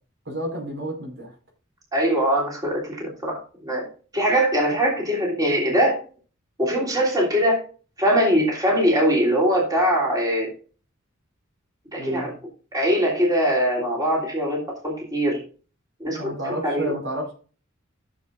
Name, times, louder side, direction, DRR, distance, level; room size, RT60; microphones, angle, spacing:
voice 1, 0.2-1.3 12.0-12.3 16.2-17.3, right 1 dB, 60° right, 2 dB, 4.9 m, -30 dB
voice 2, 1.9-6.0 6.6-7.6 8.0-10.5 11.9-12.3 12.7-15.4 16.0-16.9, equal, 20° right, -3 dB, 3.2 m, -22 dB
14.5 x 7.2 x 2.5 m, 0.38 s
head